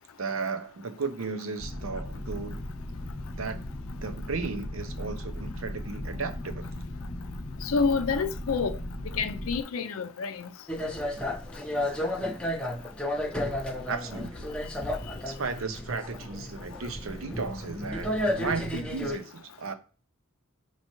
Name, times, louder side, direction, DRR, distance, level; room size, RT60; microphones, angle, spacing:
voice 1, 0.2-2.7 3.4-3.6 4.0-6.7 13.9-14.5 15.3-19.7, right 4 dB, 80° right, 0.6 m, -35 dB
sound 1, 1.6-9.6, left 1 dB, 40° left, 0.9 m, -37 dB
voice 2, 7.6-8.8 9.1-10.5, left 5 dB, 85° left, 0.5 m, -28 dB
sound 2, 10.7-19.2, left 1 dB, 5° left, 0.6 m, -32 dB
5.6 x 2.9 x 3.0 m
head